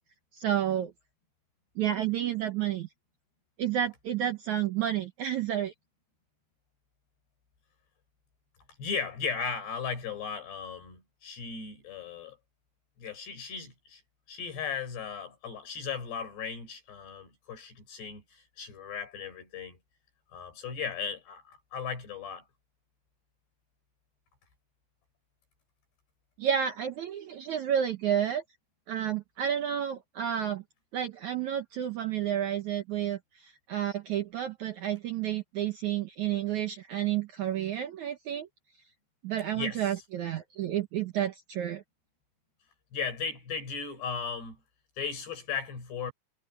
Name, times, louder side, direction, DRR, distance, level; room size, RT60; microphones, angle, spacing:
voice 1, 0.3-0.9 1.8-2.9 3.6-5.7 26.4-28.4 28.9-30.6 30.9-38.5 39.2-41.8, right 10 dB, 70° right, 1.8 m, -30 dB
voice 2, 8.8-12.4 13.0-14.0 14.3-19.8 20.3-22.4 39.5-40.0 42.9-44.6 45.0-46.1, left 6 dB, 85° left, 8.1 m, -36 dB
omnidirectional pair, 4.7 m